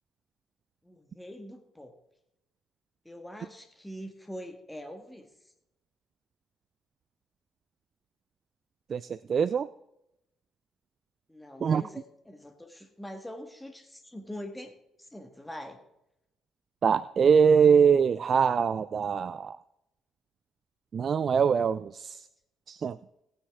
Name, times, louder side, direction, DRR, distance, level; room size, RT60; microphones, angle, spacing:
voice 1, 0.8-2.0 3.0-5.5 11.3-15.8, equal, 10° left, 6 dB, 1.6 m, -44 dB
voice 2, 8.9-9.7 11.6-11.8 16.8-19.6 20.9-22.2 22.7-23.0, right 6 dB, 45° right, 18 dB, 0.3 m, -23 dB
18.0 x 9.2 x 3.6 m, 0.85 s
figure-of-eight pair, 45°, 0 cm